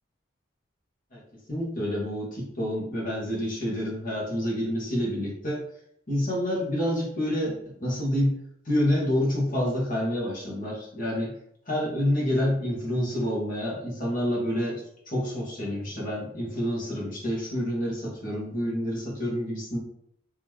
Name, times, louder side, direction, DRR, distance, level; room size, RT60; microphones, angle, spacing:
voice 1, 1.5-5.6 6.1-8.3 8.6-11.3 11.7-19.8, equal, 45° left, -4 dB, 1.5 m, -28 dB
3.8 x 3.1 x 3.2 m, 0.70 s
head